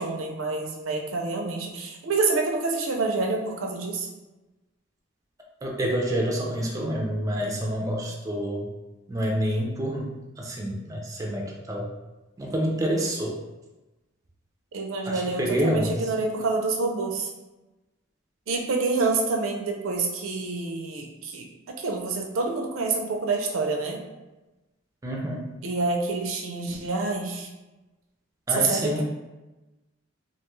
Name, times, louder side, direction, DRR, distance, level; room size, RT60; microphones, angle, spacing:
voice 1, 0.0-4.1 14.7-17.3 18.5-21.5 21.8-24.0 25.6-27.5 28.6-29.0, right 3 dB, 85° right, 2 dB, 0.5 m, -27 dB
voice 2, 5.6-8.7 9.1-10.1 10.4-11.9 12.4-13.4 15.1-16.1 25.0-25.5 28.5-29.0, equal, 15° right, -1 dB, 0.3 m, -27 dB
2.5 x 2.3 x 3.0 m, 1.1 s
head